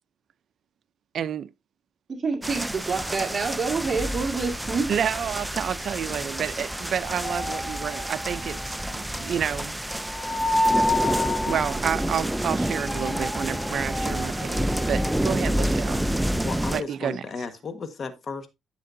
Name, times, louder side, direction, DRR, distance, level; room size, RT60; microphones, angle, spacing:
voice 1, 1.1-1.5 4.9-9.7 11.5-16.0 16.7-17.2, right 8 dB, 60° right, 0.5 m, -29 dB
voice 2, 2.1-4.9, right 4 dB, 35° right, 2.1 m, -27 dB
sound 1, 2.4-16.8, right 1 dB, 5° right, 0.5 m, -29 dB
sound 2, 7.0-9.6 9.9-15.1, left 1 dB, 20° left, 1.4 m, -29 dB
voice 3, 16.3-18.5, left 4 dB, 45° left, 1.4 m, -34 dB
10.5 x 7.7 x 2.7 m
cardioid pair, 90°, 0 cm